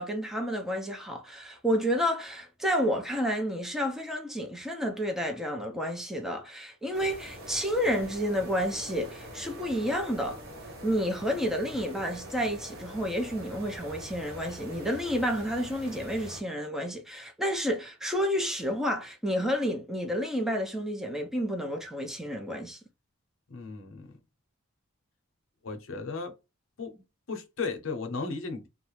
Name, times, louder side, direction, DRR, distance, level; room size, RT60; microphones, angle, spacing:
voice 1, 0.0-10.4 10.8-22.8, equal, ahead, 0.4 m, -30 dB
sound 1, 6.9-16.4, equal, 45° right, 0.8 m, -44 dB
voice 2, 23.5-24.2 25.6-26.3 26.8-27.0 27.3-28.7, left 4 dB, 65° left, 0.7 m, -35 dB
2.4 x 2.1 x 3.0 m
head